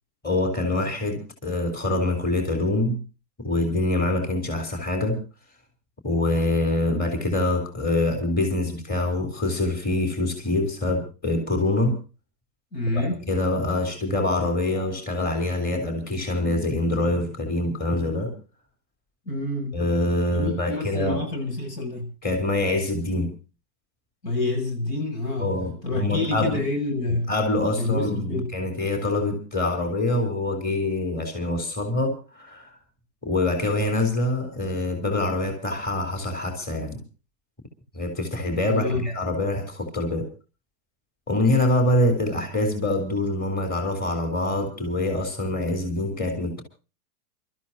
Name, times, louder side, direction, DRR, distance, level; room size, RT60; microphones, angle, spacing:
voice 1, 0.2-3.0 3.4-5.2 6.0-12.0 13.0-18.3 19.7-21.2 22.2-23.3 25.4-26.6 27.3-32.7 33.2-37.0 37.9-40.3 41.3-46.6, left 2 dB, 20° left, 3.6 m, -25 dB
voice 2, 12.7-13.2 19.3-19.8 20.3-22.1 24.2-25.5 25.8-27.3 27.7-28.5 38.7-39.1, left 2 dB, 80° left, 7.2 m, -27 dB
28.0 x 13.5 x 2.7 m
hypercardioid pair, 135°, 47 cm